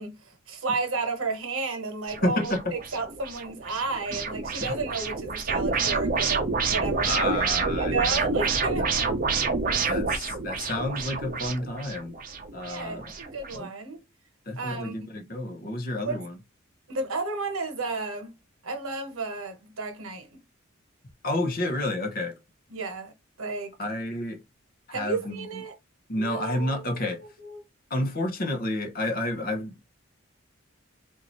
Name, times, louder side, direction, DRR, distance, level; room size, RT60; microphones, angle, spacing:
voice 1, 0.0-2.5 2.9-9.2 9.7-9.9 12.6-14.0 14.6-15.0 16.0-16.2 16.9-18.3 18.6-20.3 22.7-23.1 23.4-23.7 24.9-25.7 26.2-27.6, right 3 dB, 85° right, 1.1 m, -33 dB
sound 1, 2.1-13.6, right 4 dB, 40° right, 0.7 m, -28 dB
voice 2, 2.2-2.6 4.6-4.8 7.0-8.3 8.8-9.0 9.9-12.2 12.5-13.1 13.5-13.7 14.5-16.4 21.2-22.4 23.8-24.4 24.9-25.6 26.1-27.2 27.9-29.8, left 1 dB, 45° left, 0.8 m, -30 dB
3.7 x 2.6 x 3.0 m
head